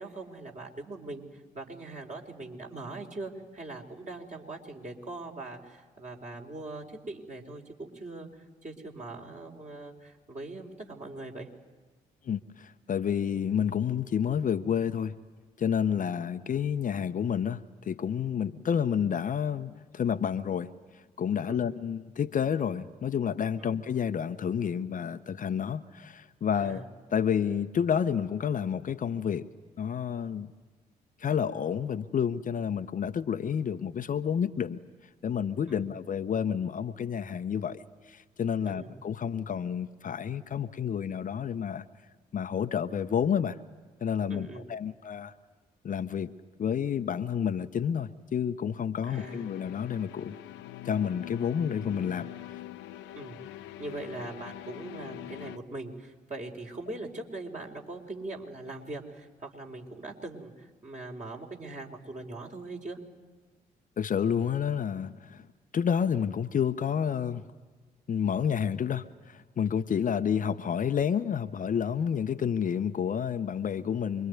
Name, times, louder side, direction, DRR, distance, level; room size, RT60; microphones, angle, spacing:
voice 1, 0.0-8.3 8.6-11.5 21.5-21.6 23.6-23.8 26.5-26.8 35.7-35.9 38.7-38.9 44.3-44.7 49.1-49.4 53.1-53.4 53.8-63.0, right 2 dB, 35° right, 1 dB, 4.5 m, -41 dB
voice 2, 12.2-15.2 15.6-26.8 27.1-29.5 29.8-30.5 31.2-34.8 35.2-41.8 42.3-43.6 44.0-45.3 45.8-46.3 46.6-50.4 50.8-52.3 64.0-65.5 65.7-67.4 68.1-74.3, left 8 dB, 40° left, 9 dB, 0.9 m, -30 dB
sound 1, 49.2-55.6, left 14 dB, 65° left, 0.9 m, -43 dB
26.5 x 23.0 x 9.6 m, 1.3 s
figure-of-eight pair, 40°, 21 cm